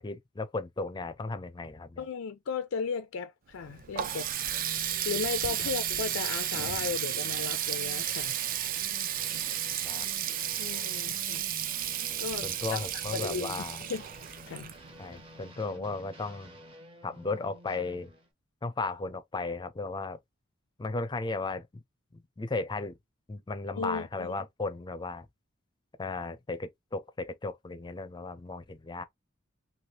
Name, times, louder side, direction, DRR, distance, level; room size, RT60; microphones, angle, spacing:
voice 1, 0.0-2.1 5.6-5.7 9.8-10.1 12.4-13.8 15.0-16.6 17.0-18.1 18.6-20.2 20.8-21.8 22.1-22.9 23.3-25.3 26.0-29.0, left 3 dB, 20° left, 0.4 m, -35 dB
voice 2, 2.0-4.3 5.0-8.4 10.6-11.4 12.2-12.8 13.1-13.5 13.8-14.1 14.5-14.7 23.8-24.3, left 5 dB, 90° left, 0.4 m, -35 dB
Water tap faucet, 3.5-15.2, right 11 dB, 45° right, 0.4 m, -33 dB
sound 1, 4.5-18.3, equal, 25° right, 0.8 m, -50 dB
3.2 x 2.8 x 2.8 m
head